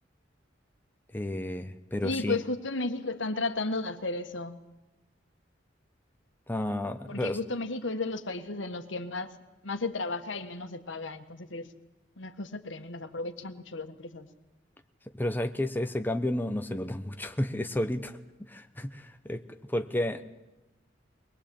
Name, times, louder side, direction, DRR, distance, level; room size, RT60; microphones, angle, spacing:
voice 1, 1.1-2.4 6.5-7.4 15.1-18.2 18.5-20.2, left 1 dB, 10° left, 7 dB, 0.9 m, -31 dB
voice 2, 2.0-4.6 7.1-9.3 9.6-11.7 12.2-14.3, left 3 dB, 75° left, 9 dB, 1.6 m, -34 dB
22.0 x 20.5 x 8.7 m, 1.0 s
head